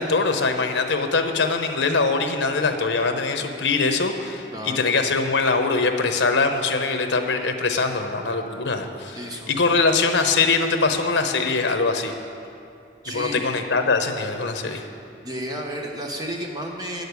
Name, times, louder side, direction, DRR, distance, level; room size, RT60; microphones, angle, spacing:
voice 1, 0.0-9.2 9.5-12.1 13.1-14.8, left 4 dB, 80° left, 6 dB, 0.9 m, -22 dB
voice 2, 4.5-4.8 9.1-9.5 13.0-13.5 14.5-14.9 15.2-17.0, equal, 20° right, 1 dB, 1.0 m, -32 dB
9.5 x 6.6 x 8.2 m, 2.6 s
head